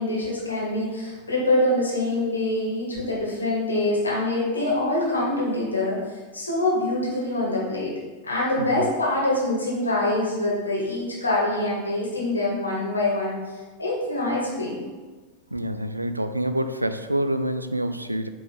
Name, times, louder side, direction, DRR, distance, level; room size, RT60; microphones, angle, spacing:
voice 1, 0.0-6.0 6.3-7.9 8.2-13.4 13.8-14.8, left 1 dB, 80° left, -4 dB, 1.9 m, -25 dB
voice 2, 15.5-18.3, right 1 dB, 85° right, 10 dB, 0.3 m, -27 dB
8.4 x 3.4 x 3.6 m, 1.3 s
figure-of-eight pair, 90°, 0 cm